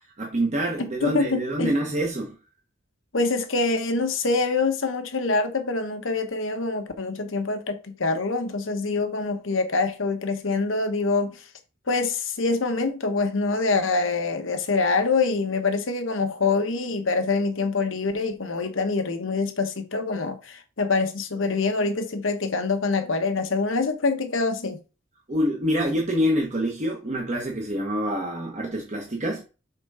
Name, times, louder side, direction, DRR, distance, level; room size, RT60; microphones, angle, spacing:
voice 1, 0.2-2.3 25.3-29.5, equal, 35° right, 1.2 m, -26 dB
voice 2, 0.8-1.8 3.1-11.4 11.9-24.8, left 3 dB, 85° left, 1.1 m, -25 dB
6.0 x 3.8 x 4.8 m
head